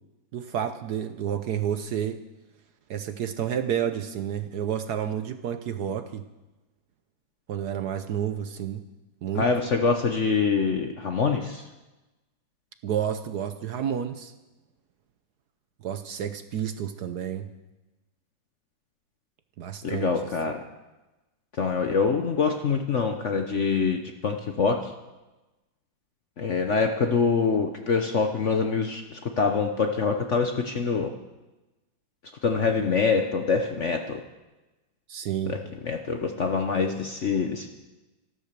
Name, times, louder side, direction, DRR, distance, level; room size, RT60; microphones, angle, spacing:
voice 1, 0.3-2.2 2.9-6.2 7.5-8.8 9.2-9.5 12.8-14.3 15.8-17.5 19.6-20.1 35.1-35.7, right 9 dB, 65° right, 9 dB, 1.1 m, -30 dB
voice 2, 9.3-11.6 19.8-20.6 21.6-24.9 26.4-31.1 32.4-34.2 35.5-35.6 35.8-37.7, left 5 dB, 50° left, 5 dB, 0.9 m, -25 dB
14.0 x 12.5 x 6.7 m, 1.1 s
omnidirectional pair, 2.2 m